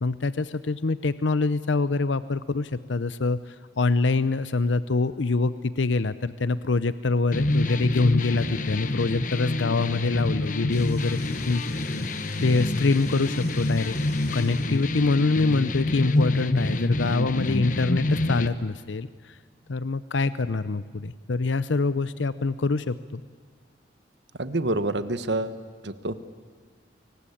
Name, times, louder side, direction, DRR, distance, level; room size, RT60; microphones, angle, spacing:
voice 1, 0.0-11.6 12.4-14.0 14.3-19.4 19.7-23.2, left 3 dB, 85° left, 15 dB, 0.7 m, -25 dB
sound 1, 7.3-18.5, left 2 dB, 45° left, 1.1 m, -27 dB
sound 2, 10.7-15.0, left 3 dB, 60° left, 6.5 m, -46 dB
voice 2, 24.4-26.2, right 2 dB, 75° right, 12 dB, 1.4 m, -28 dB
29.0 x 23.0 x 8.7 m, 1.5 s
head